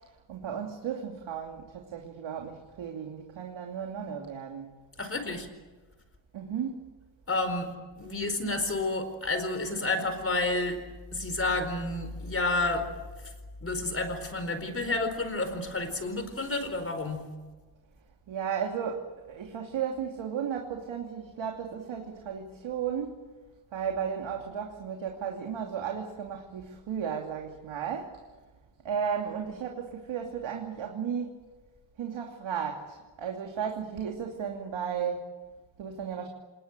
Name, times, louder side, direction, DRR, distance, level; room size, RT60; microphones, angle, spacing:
voice 1, 0.0-4.7 6.3-6.8 18.3-23.3 23.7-28.2 28.8-31.4 32.0-36.3, right 7 dB, 90° right, 2 dB, 2.8 m, -34 dB
voice 2, 5.0-5.5 7.3-7.7 8.0-10.8 11.1-12.8 13.6-17.2, left 2 dB, 30° left, 9 dB, 4.6 m, -30 dB
27.0 x 21.0 x 9.1 m, 1.3 s
wide cardioid pair, 115°, 44 cm